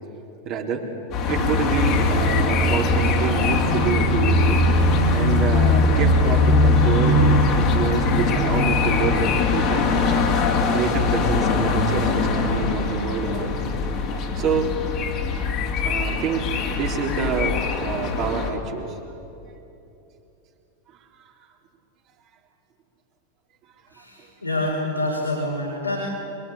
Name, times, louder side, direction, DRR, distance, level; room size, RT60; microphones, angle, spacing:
voice 1, 0.5-0.9 1.3-4.6 5.1-13.7 14.1-14.7 15.8-19.0 21.1-21.2 24.0-24.1, right 6 dB, 40° right, 1 dB, 3.6 m, -27 dB
sound 1, 1.1-18.5, left 3 dB, 35° left, 2.9 m, -21 dB
voice 2, 23.9-26.0, left 1 dB, 85° left, -4 dB, 4.9 m, -27 dB
27.0 x 23.0 x 8.6 m, 2.9 s
figure-of-eight pair, 90°, 0 cm